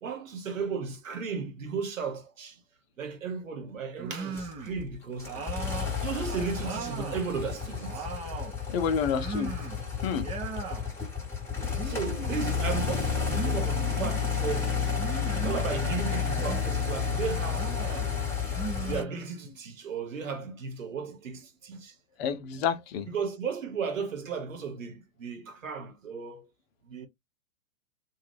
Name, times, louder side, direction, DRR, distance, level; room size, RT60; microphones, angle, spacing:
voice 1, 0.0-2.6 3.0-5.3 6.0-8.1 11.8-14.8 15.3-17.7 18.8-21.9 23.1-26.5 26.8-27.1, right 5 dB, 80° right, 1.1 m, -35 dB
sound 1, 4.0-4.8 5.2-7.2 7.6-8.6 9.1-9.8 10.1-10.8 11.7-12.5 13.3-14.2 14.9-15.7 16.3-16.9 17.5-18.1 18.5-19.6, right 5 dB, 15° right, 0.5 m, -39 dB
sound 2, 4.3-19.0, left 6 dB, 5° left, 1.0 m, -31 dB
voice 2, 8.7-9.5 10.0-10.2 22.2-23.1, left 7 dB, 50° left, 0.7 m, -29 dB
2.7 x 2.3 x 3.3 m
hypercardioid pair, 115°, 39 cm